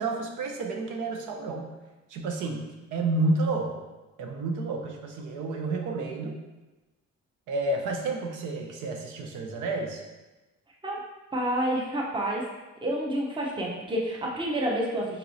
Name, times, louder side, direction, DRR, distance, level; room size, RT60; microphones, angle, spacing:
voice 1, 0.0-1.7 2.1-2.6 2.9-3.8 4.2-6.4 7.5-10.0, right 2 dB, 90° right, 2 dB, 0.7 m, -30 dB
voice 2, 11.3-12.4 12.8-15.2, right 1 dB, 15° right, -2 dB, 0.8 m, -29 dB
5.3 x 2.9 x 2.7 m, 1.1 s
cardioid pair, 90°, 30 cm